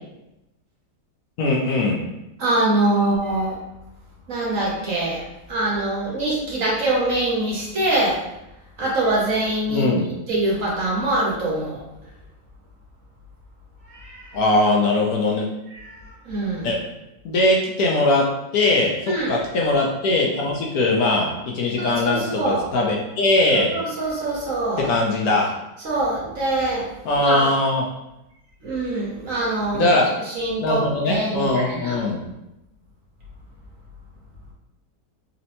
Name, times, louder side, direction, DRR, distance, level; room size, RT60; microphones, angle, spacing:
voice 1, 1.4-2.0 9.7-10.1 14.3-15.5 16.6-16.8 17.2-18.3 18.5-23.7 24.8-25.5 27.0-27.8 29.7-30.1 30.6-32.2, left 2 dB, 70° left, -2 dB, 1.0 m, -20 dB
voice 2, 2.4-3.6 4.3-8.2 8.8-9.9 10.3-11.8 13.8-14.4 15.7-16.7 19.1-19.5 21.8-22.7 23.5-24.9 25.8-26.9 27.2-27.5 28.6-32.0, right 2 dB, 55° right, -5 dB, 1.3 m, -24 dB
4.2 x 2.8 x 2.7 m, 0.91 s
omnidirectional pair, 1.8 m